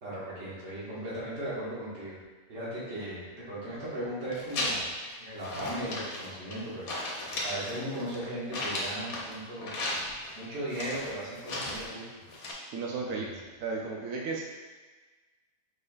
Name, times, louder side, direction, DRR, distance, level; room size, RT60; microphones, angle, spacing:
voice 1, 0.0-2.2 2.5-4.9 5.2-9.7 10.3-12.0 13.0-13.3, right 1 dB, 50° right, -8 dB, 1.6 m, -37 dB
sound 1, 4.2-5.0 5.4-6.6 6.9-9.3 9.6-10.3 10.7-11.9 12.3-12.5, left 1 dB, 70° left, 1.3 m, -35 dB
voice 2, 12.7-13.3 13.6-14.4, right 4 dB, 90° right, -1 dB, 1.1 m, -34 dB
5.1 x 4.3 x 2.2 m, 1.3 s
omnidirectional pair, 1.5 m